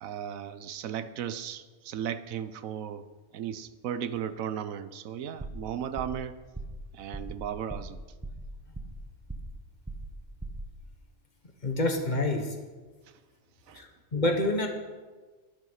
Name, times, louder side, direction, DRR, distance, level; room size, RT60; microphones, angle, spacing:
voice 1, 0.0-3.1 3.3-6.4 6.9-8.0 13.7-13.8, right 9 dB, 85° right, 13 dB, 1.1 m, -36 dB
sound 1, 5.4-5.7 6.0-6.2 6.6-6.8 7.1-7.4 7.7-8.0 8.2-9.0 9.3-9.6 9.9-10.2 10.4-10.7, right 2 dB, 10° right, 1.1 m, -39 dB
voice 2, 11.6-12.5 13.7-14.7, left 2 dB, 35° left, 4 dB, 1.4 m, -27 dB
11.0 x 10.0 x 5.7 m, 1.3 s
omnidirectional pair, 1.4 m